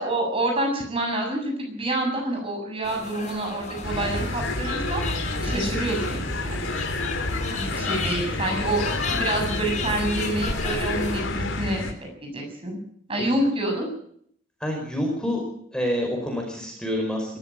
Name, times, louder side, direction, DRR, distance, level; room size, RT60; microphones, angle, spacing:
voice 1, 0.0-5.0 5.4-6.6 7.5-12.8 13.1-13.9, right 1 dB, 30° right, 3 dB, 7.1 m, -27 dB
sound 1, 2.8-11.2, left 3 dB, 35° left, 5.9 m, -34 dB
sound 2, 3.8-11.9, left 2 dB, 85° left, 3.5 m, -29 dB
voice 2, 14.6-15.4 15.7-17.4, left 1 dB, 5° left, 2 dB, 5.1 m, -27 dB
21.0 x 14.0 x 9.0 m, 0.65 s
head